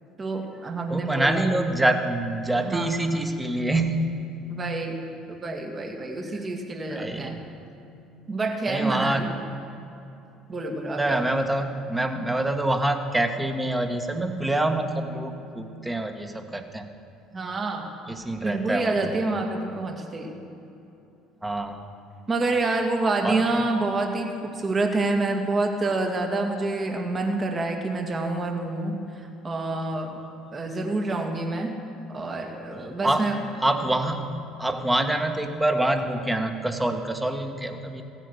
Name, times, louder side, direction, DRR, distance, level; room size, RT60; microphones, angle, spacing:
voice 1, 0.2-1.4 2.5-2.9 4.5-5.0 5.3-7.4 8.3-9.3 10.5-11.2 17.3-17.9 18.4-20.3 22.3-30.2 30.5-31.7 32.1-33.4, right 2 dB, 35° right, 3 dB, 2.0 m, -27 dB
voice 2, 0.9-4.2 6.8-7.5 8.7-9.3 11.0-16.9 18.1-19.0 21.4-21.8 23.2-23.4 33.0-33.3 33.6-38.0, right 1 dB, 10° right, 5 dB, 1.5 m, -26 dB
16.0 x 9.0 x 6.6 m, 2.8 s
hypercardioid pair, 60°, 0 cm